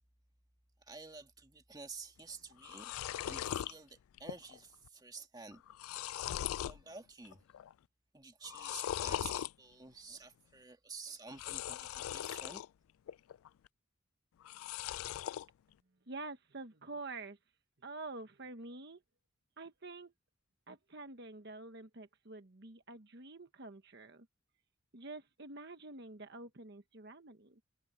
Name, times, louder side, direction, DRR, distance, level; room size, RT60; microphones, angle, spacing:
voice 1, 0.9-2.9 3.2-5.6 6.0-7.5 8.1-12.6, right 4 dB, 20° right, 2.1 m, -51 dB
sound 1, 2.2-2.3 2.5-3.7 4.2-4.6 4.8-4.9 5.5-6.8 7.2-7.7 8.4-9.5 11.3-12.7 13.1-13.7 14.4-15.5, left 11 dB, 90° left, 0.3 m, -39 dB
voice 2, 16.1-17.4 17.8-19.0 19.6-20.1 20.7-24.3 24.9-27.6, right 3 dB, 55° right, 1.2 m, -47 dB
head